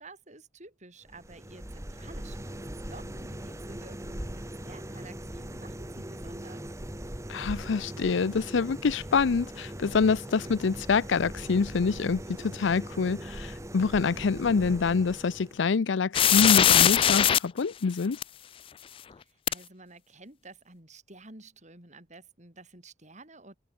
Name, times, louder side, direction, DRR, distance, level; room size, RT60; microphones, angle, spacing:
voice 1, 0.0-6.7 19.2-23.6, right 2 dB, 40° right, 5.9 m, -51 dB
sound 1, 1.0-15.7, right 1 dB, 15° right, 1.7 m, -40 dB
voice 2, 7.3-18.2, left 5 dB, 85° left, 0.5 m, -26 dB
sound 2, 16.1-17.4 18.2-18.3 19.5-19.6, left 10 dB, 30° left, 0.3 m, -19 dB
open air
head